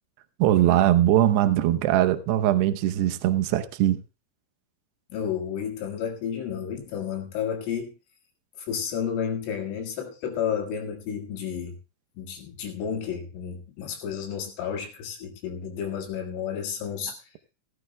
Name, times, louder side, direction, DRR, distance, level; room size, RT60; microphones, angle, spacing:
voice 1, 0.4-4.0, right 12 dB, 85° right, 2.4 m, -21 dB
voice 2, 5.1-7.9 8.6-11.8 12.2-17.3, left 8 dB, 75° left, 4.3 m, -31 dB
16.5 x 16.0 x 2.2 m
omnidirectional pair, 6.0 m